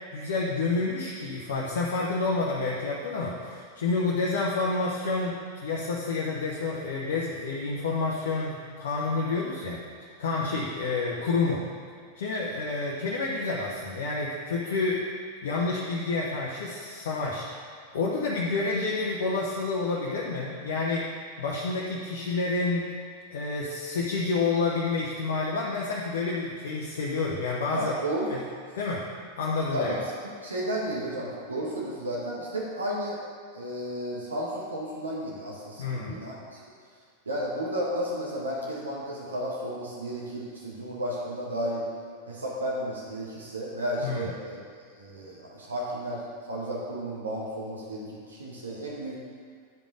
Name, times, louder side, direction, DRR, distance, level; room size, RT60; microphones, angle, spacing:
voice 1, 0.1-11.6 12.2-15.1 15.4-17.5 17.9-21.1 21.4-22.9 23.3-27.9 28.3-28.4 28.8-29.0 29.4-29.9 35.8-36.2 44.0-44.3, left 3 dB, 60° left, -4 dB, 0.9 m, -29 dB
voice 2, 27.7-28.3 29.7-30.0 30.4-33.2 33.5-36.6 37.2-41.9 42.3-44.6 45.0-49.2, equal, 75° right, -5 dB, 1.2 m, -33 dB
10.5 x 5.1 x 3.8 m, 2.1 s
figure-of-eight pair, 90°, 0 cm